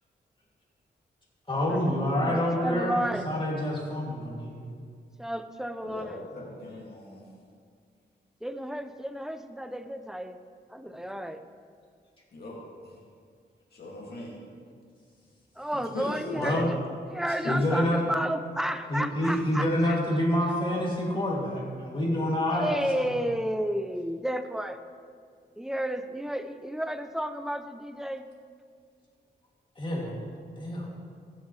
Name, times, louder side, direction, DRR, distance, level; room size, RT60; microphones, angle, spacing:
voice 1, 1.5-4.7 16.3-16.7 17.5-18.0 18.9-23.2 29.8-30.1 30.6-30.9, left 1 dB, 25° left, -4 dB, 2.6 m, -27 dB
voice 2, 2.1-3.3 5.2-6.2 8.4-10.4 10.7-11.4 15.6-16.8 17.0-20.0 22.5-24.8 25.6-28.3, equal, 5° right, 9 dB, 0.5 m, -32 dB
voice 3, 5.8-7.2 10.8-11.0 12.3-12.6 12.8-12.9 13.7-14.4 15.9-16.6 17.3-17.8, left 2 dB, 60° left, -4 dB, 2.3 m, -39 dB
15.5 x 7.3 x 3.2 m, 2.1 s
wide cardioid pair, 90°, 18 cm